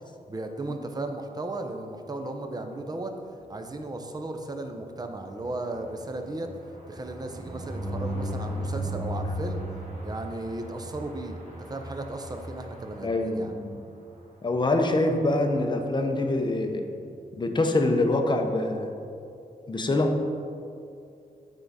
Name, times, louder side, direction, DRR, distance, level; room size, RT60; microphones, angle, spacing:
voice 1, 0.3-3.1 3.5-6.5 6.9-9.6 10.0-11.4 11.7-13.5, right 2 dB, 25° right, 5 dB, 0.6 m, -35 dB
sound 1, 4.8-13.6 14.1-14.2 14.5-14.6 14.9-15.1, right 1 dB, 45° right, 1.5 m, -36 dB
voice 2, 13.0-13.8 14.4-16.9 17.3-19.0 19.7-20.2, left 2 dB, 30° left, 4 dB, 0.6 m, -25 dB
9.1 x 3.6 x 4.1 m, 2.5 s
wide cardioid pair, 105°, 15 cm